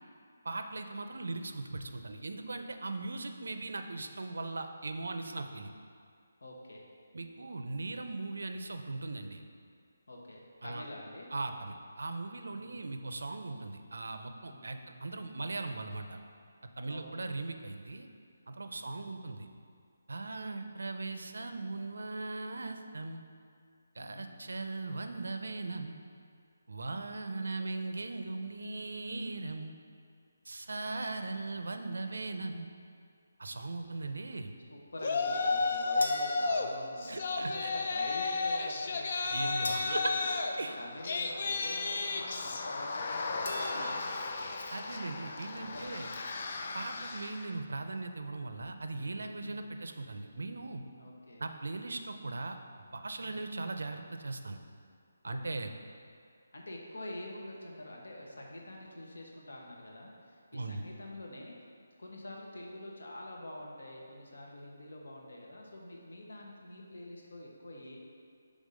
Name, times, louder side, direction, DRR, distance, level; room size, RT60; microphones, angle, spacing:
voice 1, 0.4-5.7 7.1-9.4 10.6-10.8 11.3-16.2 16.8-18.1 18.5-19.5 20.1-23.2 24.0-26.0 26.7-29.7 30.5-32.7 33.4-34.6 37.1-37.7 39.3-40.1 40.6-40.8 43.7-43.9 44.7-46.1 46.7-50.8 51.4-52.6 52.9-54.6 55.2-55.7 60.5-60.8, right 3 dB, 80° right, 6 dB, 0.5 m, -39 dB
voice 2, 6.4-6.9 10.1-11.3 12.5-12.8 14.5-14.9 16.9-17.3 18.7-19.1 24.0-24.4 34.7-39.1 39.7-40.3 40.8-44.6 45.5-46.1 49.4-49.8 51.0-51.4 53.2-53.5 55.2-55.7 56.5-61.5 62.0-68.0, left 1 dB, 80° left, -1 dB, 1.1 m, -46 dB
Yell, 35.0-36.7 37.0-47.5, left 3 dB, 35° left, 0.3 m, -33 dB
sound 1, 36.0-37.5 39.6-41.5 43.4-44.6, left 1 dB, 55° left, 0.7 m, -44 dB
5.5 x 3.5 x 5.0 m, 2.2 s
hypercardioid pair, 175°, 0 cm